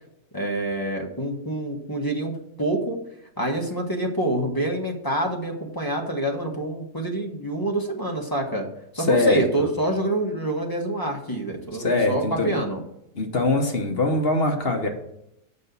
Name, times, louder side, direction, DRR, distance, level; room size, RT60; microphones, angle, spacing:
voice 1, 0.3-3.0 3.4-8.6 8.9-12.8, right 1 dB, 15° left, 1 dB, 1.3 m, -27 dB
voice 2, 9.0-9.7 11.8-12.6 13.1-14.9, left 2 dB, 40° left, 3 dB, 1.2 m, -23 dB
7.0 x 5.4 x 6.9 m, 0.79 s
omnidirectional pair, 1.7 m